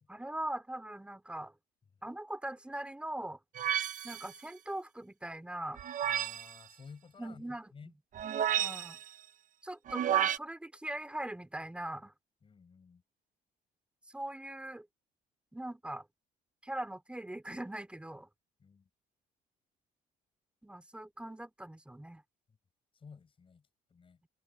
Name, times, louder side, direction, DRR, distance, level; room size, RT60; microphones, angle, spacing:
voice 1, 0.1-1.5 2.0-3.4 4.0-5.8 7.2-7.9 8.6-9.0 9.6-12.1 14.1-14.9 15.5-16.0 16.6-18.3 20.6-22.2, right 1 dB, 5° right, 3.0 m, -41 dB
sound 1, 3.6-4.4 5.8-6.6 8.2-9.1 9.9-10.4, right 10 dB, 50° right, 1.1 m, -31 dB
voice 2, 6.0-7.4 7.7-7.9 8.5-8.7 12.4-13.0 18.6-18.9 22.9-24.2, left 5 dB, 30° left, 7.2 m, -54 dB
cardioid pair, 110°, 17 cm